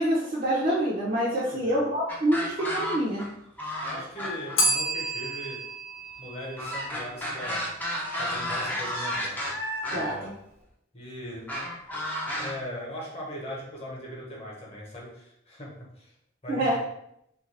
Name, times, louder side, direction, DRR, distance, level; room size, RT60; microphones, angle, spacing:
voice 1, 0.0-3.2 9.9-10.3 16.5-16.8, right 1 dB, 40° right, -6 dB, 0.6 m, -26 dB
voice 2, 1.4-1.8 3.8-5.6 6.2-7.7 8.2-9.4 9.9-10.2 10.9-11.5 12.4-16.1 16.4-16.7, equal, 30° left, -3 dB, 1.0 m, -39 dB
sound 1, 2.1-3.3 3.6-4.8 6.6-10.2 11.5-12.5, equal, 10° left, 0.5 m, -32 dB
Bell, 4.6-7.4, right 1 dB, 90° left, 0.8 m, -30 dB
3.2 x 2.5 x 3.2 m, 0.76 s
head